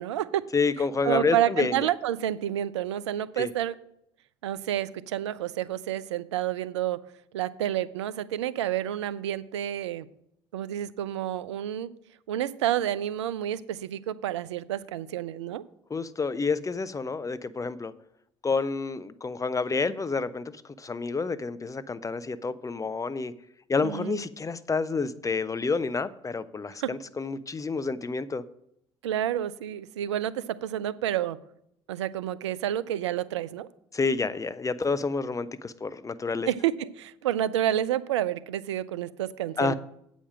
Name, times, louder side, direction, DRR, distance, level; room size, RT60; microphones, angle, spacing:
voice 1, 0.0-0.4 1.0-3.7 4.4-7.0 7.3-10.1 10.5-11.9 12.3-15.6 23.8-24.2 26.8-26.9 29.0-31.4 31.9-33.7 36.5-39.7, right 11 dB, 90° right, 17 dB, 0.4 m, -29 dB
voice 2, 0.5-1.9 3.4-3.5 15.9-17.9 18.4-20.5 20.8-23.3 23.7-28.4 33.9-36.5 39.6-39.7, left 4 dB, 25° left, 16 dB, 0.6 m, -29 dB
8.5 x 5.1 x 7.3 m, 0.75 s
hypercardioid pair, 60°, 14 cm